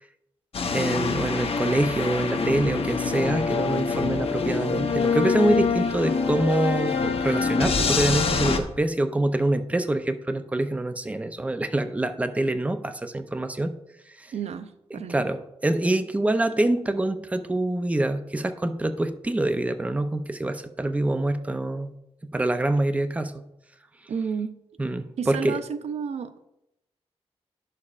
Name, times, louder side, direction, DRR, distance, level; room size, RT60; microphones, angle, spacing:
sound 1, 0.5-8.6, left 5 dB, 60° left, 0.8 m, -25 dB
voice 1, 0.7-13.7 14.2-14.3 14.9-21.9 22.3-23.4 24.8-25.6, right 1 dB, 10° right, 9 dB, 0.5 m, -25 dB
voice 2, 14.3-15.2 24.1-24.5 25.2-26.3, right 6 dB, 75° right, 11 dB, 0.5 m, -31 dB
11.0 x 6.7 x 2.4 m, 0.86 s
wide cardioid pair, 100°, 11 cm